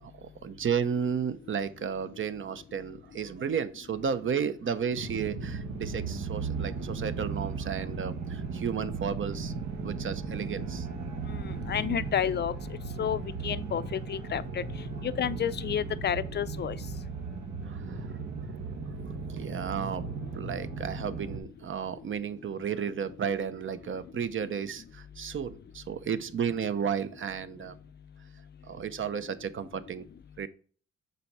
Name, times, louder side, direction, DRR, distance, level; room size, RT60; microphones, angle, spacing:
voice 1, 0.0-9.5 9.8-10.9 17.6-18.1 18.9-20.0 20.3-27.8 28.6-30.0 30.4-30.5, right 7 dB, 40° right, 0.7 m, -33 dB
sound 1, 4.9-21.4, right 4 dB, 70° right, 1.4 m, -36 dB
voice 2, 11.3-12.5 13.0-14.6 15.0-16.8, left 9 dB, 35° left, 0.5 m, -30 dB
6.8 x 4.4 x 4.7 m
cardioid pair, 90°, 30 cm